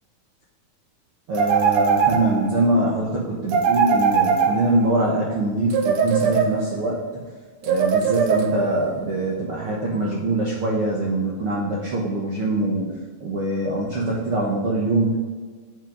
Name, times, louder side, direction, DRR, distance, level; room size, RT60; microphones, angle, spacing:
voice 1, 1.3-7.0 7.6-12.9 13.2-15.2, right 2 dB, 65° right, -3 dB, 1.4 m, -23 dB
sound 1, 1.4-2.6 3.5-5.0 5.7-6.9 7.6-8.8, right 6 dB, 85° right, 1.5 m, -21 dB
10.0 x 7.8 x 4.0 m, 1.5 s
omnidirectional pair, 4.3 m